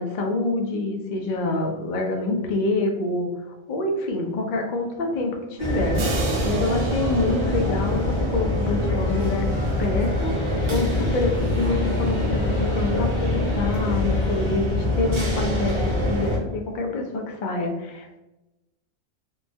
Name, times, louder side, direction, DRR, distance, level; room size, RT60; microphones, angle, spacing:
voice 1, 0.0-6.0 6.4-9.5 9.8-12.4 12.7-18.2, left 2 dB, 90° left, 3 dB, 0.4 m, -26 dB
sound 1, 5.6-16.4, left 1 dB, 35° right, 0.5 m, -24 dB
sound 2, 5.9-8.8, right 4 dB, 75° right, 0.9 m, -35 dB
sound 3, 9.1-14.6, left 2 dB, 65° left, 1.0 m, -40 dB
3.1 x 2.2 x 2.6 m, 0.98 s
omnidirectional pair, 1.4 m